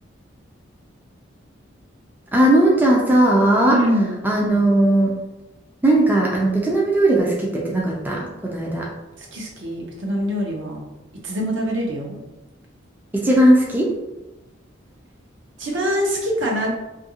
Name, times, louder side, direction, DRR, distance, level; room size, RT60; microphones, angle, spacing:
voice 1, 2.3-3.8 4.2-5.1 5.8-8.9 13.1-13.9, right 1 dB, 10° right, -3 dB, 0.3 m, -17 dB
voice 2, 3.7-4.2 9.2-10.8 11.1-12.2 15.6-16.7, equal, 70° right, -1 dB, 0.7 m, -24 dB
2.7 x 2.5 x 2.7 m, 1.0 s
head